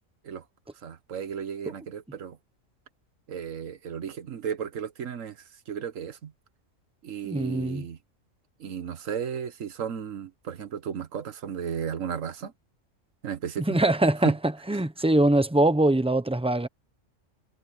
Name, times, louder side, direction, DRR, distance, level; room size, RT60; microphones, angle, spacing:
voice 1, 0.8-2.4 3.3-6.3 7.0-8.0 8.6-12.5 13.2-13.8 14.2-14.3, right 8 dB, 90° right, 1.5 m, -34 dB
voice 2, 7.2-7.8 13.7-14.3 14.7-16.7, right 1 dB, 5° right, 0.9 m, -22 dB
omnidirectional pair, 1.3 m